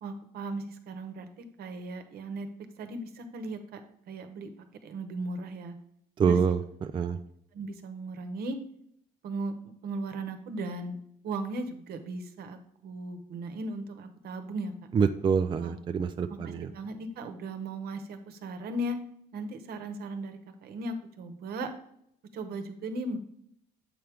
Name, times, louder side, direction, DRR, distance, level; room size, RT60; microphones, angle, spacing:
voice 1, 0.0-2.5 2.8-3.8 4.1-4.5 4.8-5.8 6.2-6.4 7.0-7.2 7.5-8.6 9.2-11.0 11.2-14.7 15.6-15.7 16.3-19.0 19.3-21.7 22.3-23.2, right 2 dB, 65° right, 8 dB, 1.0 m, -37 dB
voice 2, 6.2-7.2 14.9-16.7, right 6 dB, 30° right, 8 dB, 0.4 m, -26 dB
7.8 x 4.6 x 3.5 m, 0.73 s
cardioid pair, 110°, 17 cm